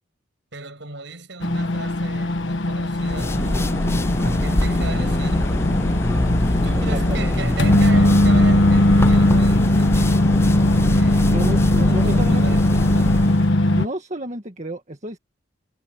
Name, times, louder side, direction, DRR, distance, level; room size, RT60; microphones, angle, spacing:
voice 1, 0.5-5.8 6.6-10.2 10.9-13.2, right 3 dB, 65° right, 6.6 m, -37 dB
sound 1, 1.4-13.9, left 1 dB, 70° left, 1.2 m, -19 dB
sound 2, 2.9-13.5, left 1 dB, 15° left, 0.5 m, -23 dB
voice 2, 6.7-7.3 11.2-12.5 13.7-15.2, right 1 dB, 35° right, 1.9 m, -30 dB
head